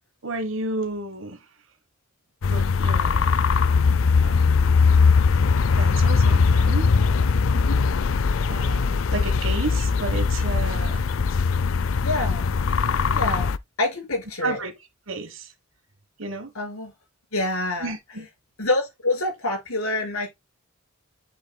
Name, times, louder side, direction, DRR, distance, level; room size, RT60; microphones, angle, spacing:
voice 1, 0.2-1.4 2.5-3.3 4.2-4.7 5.7-6.9 8.5-11.1 14.4-14.7 15.1-15.5 16.2-16.5 17.8-18.3, right 2 dB, 60° right, 1.3 m, -32 dB
sound 1, 2.4-13.6, left 5 dB, 65° left, 0.4 m, -20 dB
voice 2, 12.0-12.5 13.1-13.5 13.8-14.6 16.5-16.9 17.3-17.9 18.6-20.3, left 2 dB, 85° left, 4.8 m, -26 dB
7.9 x 6.9 x 2.2 m
head